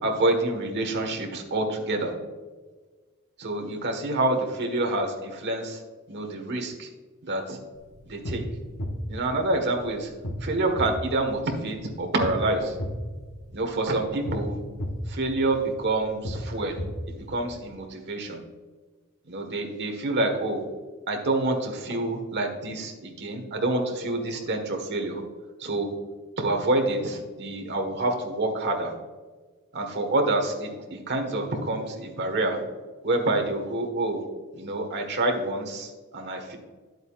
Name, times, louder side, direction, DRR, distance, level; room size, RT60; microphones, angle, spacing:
voice 1, 0.0-2.1 3.4-5.8 6.1-6.9 7.2-7.6 8.1-8.4 9.1-10.1 10.4-12.8 13.5-14.6 15.1-16.8 17.1-18.4 19.3-20.6 21.1-25.2 25.6-25.9 26.4-28.9 29.7-32.6 33.0-34.2 34.6-36.6, right 2 dB, 50° right, 3 dB, 1.4 m, -27 dB
sound 1, 7.8-17.7, equal, 65° left, 1.2 m, -35 dB
11.0 x 7.9 x 2.4 m, 1.4 s
head